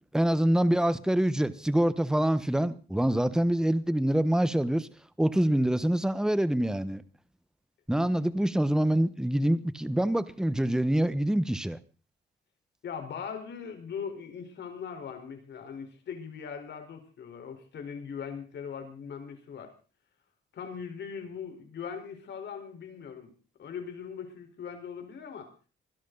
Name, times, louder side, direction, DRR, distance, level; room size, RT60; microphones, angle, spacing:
voice 1, 0.1-4.9 5.2-7.0 7.9-11.8, right 1 dB, 5° right, 1.1 m, -25 dB
voice 2, 12.8-19.7 20.5-23.3 23.6-25.5, left 6 dB, 60° left, 4.4 m, -40 dB
24.0 x 11.5 x 4.0 m
cardioid pair, 90°, 20 cm